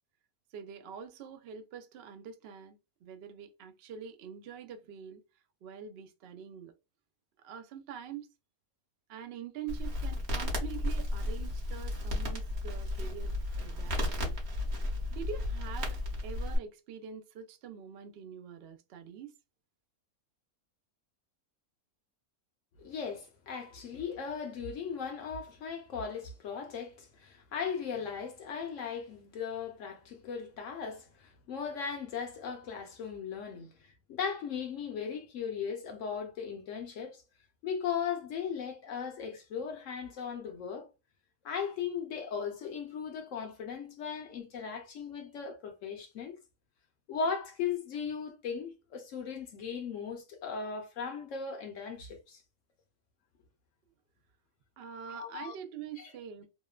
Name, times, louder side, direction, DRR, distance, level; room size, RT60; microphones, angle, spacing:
voice 1, 0.5-5.2 5.6-6.7 7.4-8.3 9.1-14.4 15.1-19.3 54.8-56.4, right 7 dB, 75° right, 0.5 m, -45 dB
Crackle, 9.7-16.6, left 1 dB, 50° right, 0.9 m, -34 dB
voice 2, 22.8-33.7 34.1-37.2 37.6-40.9 41.4-46.4 47.1-52.4 55.1-55.5 56.0-56.1, left 6 dB, 65° left, 0.8 m, -37 dB
2.8 x 2.1 x 2.3 m
omnidirectional pair, 1.6 m